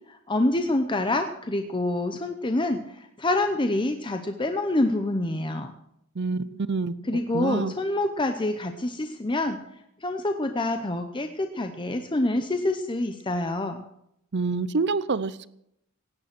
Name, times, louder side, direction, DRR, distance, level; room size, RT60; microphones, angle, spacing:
voice 1, 0.3-2.8 3.2-5.7 7.1-9.6 10.0-13.8, left 2 dB, 20° left, 6 dB, 0.8 m, -26 dB
voice 2, 6.2-7.0 7.3-7.7 14.3-15.5, right 4 dB, 50° right, 17 dB, 0.6 m, -27 dB
17.0 x 9.2 x 6.1 m, 0.77 s
head